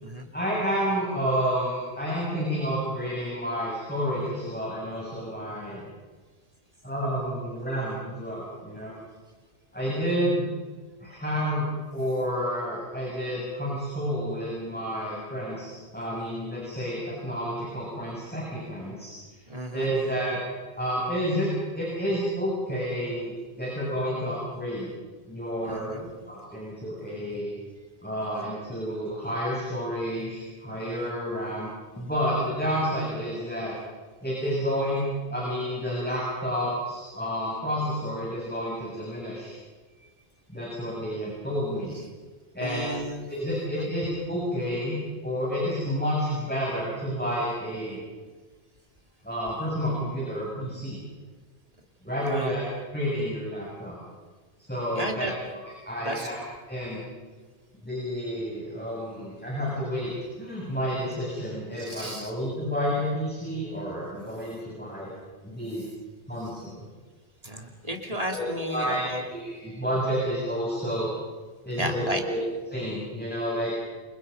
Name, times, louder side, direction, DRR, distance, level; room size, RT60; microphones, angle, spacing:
voice 1, 0.3-5.8 6.8-8.9 9.7-10.5 11.0-19.1 19.7-20.4 20.8-21.5 21.7-24.9 25.3-26.0 26.3-27.6 28.0-31.7 32.0-33.7 34.2-35.0 35.3-39.5 40.5-42.0 42.5-42.9 43.3-48.0 49.2-51.0 52.0-52.6 52.9-54.0 54.7-55.3 55.8-56.4 56.7-57.1 57.8-60.1 60.4-65.1 65.4-65.8 66.3-66.8 68.3-68.4 68.7-69.0 69.3-71.1 71.6-72.4 72.7-73.8, equal, 10° left, -6 dB, 7.8 m, -30 dB
voice 2, 19.5-19.9 25.6-26.1 42.6-43.3 43.8-43.9 52.2-52.6 55.0-55.3 56.0-56.3 61.8-62.3 67.4-69.2 71.7-72.2, equal, 30° right, 2 dB, 3.1 m, -33 dB
29.5 x 26.5 x 5.5 m, 1.4 s
omnidirectional pair, 1.2 m